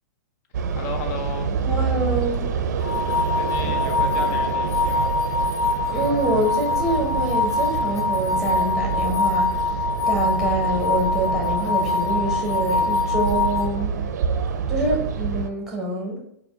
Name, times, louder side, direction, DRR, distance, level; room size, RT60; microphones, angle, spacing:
sound 1, 0.5-15.5, right 6 dB, 65° right, 0.4 m, -27 dB
voice 1, 0.8-1.5 2.9-5.2, left 4 dB, 50° left, 4 dB, 0.6 m, -34 dB
voice 2, 1.6-2.4 5.9-14.0 14.7-16.2, right 1 dB, 5° right, -1 dB, 1.3 m, -26 dB
sound 2, 2.8-13.6, left 4 dB, 25° left, 1.1 m, -24 dB
4.1 x 2.4 x 3.5 m, 0.74 s
hypercardioid pair, 120°, 10 cm